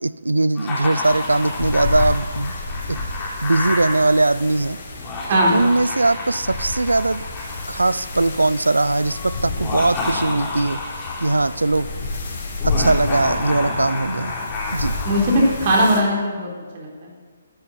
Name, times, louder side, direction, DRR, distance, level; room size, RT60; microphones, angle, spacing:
voice 1, 0.0-2.5 2.9-3.0 3.4-4.8 5.5-7.2 7.7-10.8 11.2-11.9 12.6-14.3 14.7-14.9, right 2 dB, 90° right, 18 dB, 0.5 m, -20 dB
Laughter, 0.6-4.0 4.9-8.2 9.5-11.5 12.6-15.5, left 2 dB, 20° left, 3.7 m, -29 dB
sound 1, 1.0-16.0, left 3 dB, 50° left, 4.6 m, -30 dB
voice 2, 15.0-17.1, equal, 45° right, -1 dB, 3.8 m, -19 dB
12.5 x 8.8 x 8.0 m, 1.5 s
figure-of-eight pair, 140°, 0 cm